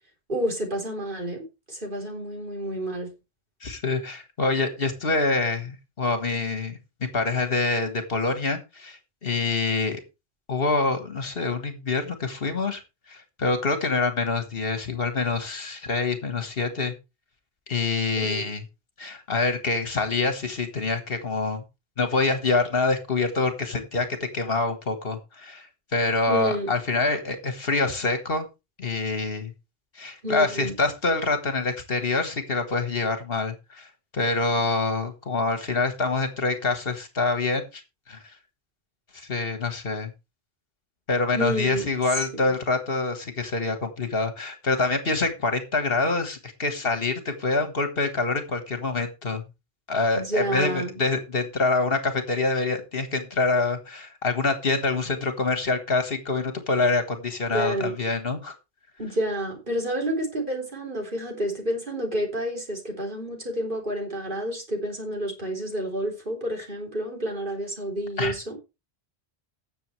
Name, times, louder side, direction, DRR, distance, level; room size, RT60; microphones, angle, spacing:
voice 1, 0.3-3.1 18.2-18.5 26.3-26.7 30.2-30.7 41.3-41.9 42.2-42.5 50.2-51.0 57.5-57.9 59.0-68.6, right 1 dB, 50° right, 3.9 m, -29 dB
voice 2, 3.6-6.8 7.1-10.0 10.5-12.8 13.1-16.9 17.7-18.6 19.0-21.6 22.0-25.7 25.9-28.5 28.8-29.5 30.0-33.9 34.1-37.8 38.1-38.2 39.1-40.1 41.1-49.4 49.9-58.5 68.2-68.3, left 3 dB, 65° left, 1.9 m, -26 dB
18.5 x 6.9 x 3.3 m
omnidirectional pair, 1.1 m